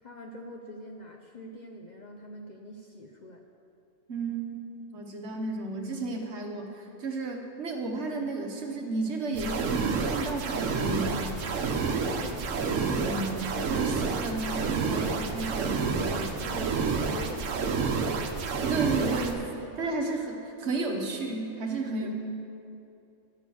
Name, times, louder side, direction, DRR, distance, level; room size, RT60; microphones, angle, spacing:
voice 1, 0.0-3.4 12.1-12.9 15.8-18.6 19.8-20.0 22.0-22.1, left 1 dB, 45° left, 1 dB, 0.7 m, -44 dB
voice 2, 4.1-4.6 4.9-11.3 13.0-16.4 18.6-19.5 19.8-22.1, right 3 dB, 60° right, 2 dB, 1.3 m, -33 dB
sound 1, 9.3-19.3, right 5 dB, 85° right, 1.2 m, -29 dB
10.5 x 6.4 x 7.0 m, 2.7 s
omnidirectional pair, 1.3 m